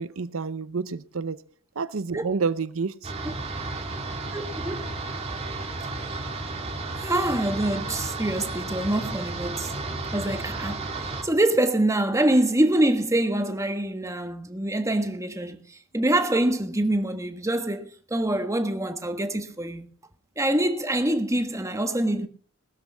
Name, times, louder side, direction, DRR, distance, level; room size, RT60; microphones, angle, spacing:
voice 1, 0.0-1.4 1.8-3.1 4.3-4.4, right 5 dB, 75° right, 0.7 m, -29 dB
sound 1, 3.0-11.2, right 2 dB, 30° right, 2.3 m, -33 dB
voice 2, 4.3-4.9 6.0-6.2 7.0-9.7 10.1-10.9 11.2-19.9 20.4-22.3, right 1 dB, 15° right, 1.4 m, -25 dB
20.5 x 13.0 x 3.5 m
head